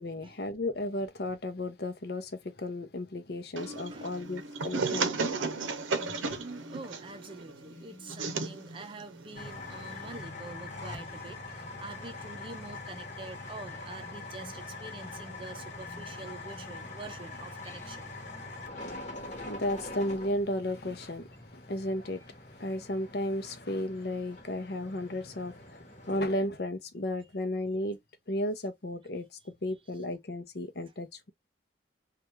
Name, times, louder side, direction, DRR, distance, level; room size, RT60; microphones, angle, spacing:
voice 1, 0.0-5.4 6.1-6.4 19.2-22.2 22.6-28.0 28.3-31.3, left 1 dB, 55° left, 0.6 m, -34 dB
sound 1, 3.6-10.2, right 4 dB, 90° right, 0.7 m, -35 dB
voice 2, 3.9-4.2 4.9-5.3 5.9-18.1, right 3 dB, 25° right, 0.5 m, -46 dB
sound 2, 4.1-17.2 17.6-23.5, left 2 dB, 10° left, 0.7 m, -55 dB
sound 3, 9.3-26.3, left 2 dB, 35° left, 1.1 m, -44 dB
3.3 x 2.3 x 3.0 m
head